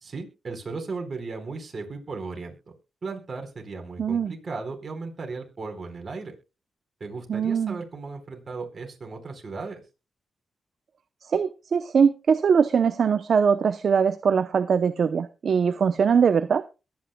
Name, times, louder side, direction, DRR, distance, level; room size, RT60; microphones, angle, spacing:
voice 1, 0.0-2.6 3.0-6.4 7.0-9.8, right 4 dB, 50° right, 4 dB, 4.5 m, -36 dB
voice 2, 4.0-4.3 7.3-7.8 11.3-16.6, right 6 dB, 65° right, 12 dB, 0.7 m, -22 dB
22.5 x 9.5 x 2.3 m, 0.29 s
cardioid pair, 65°, 0 cm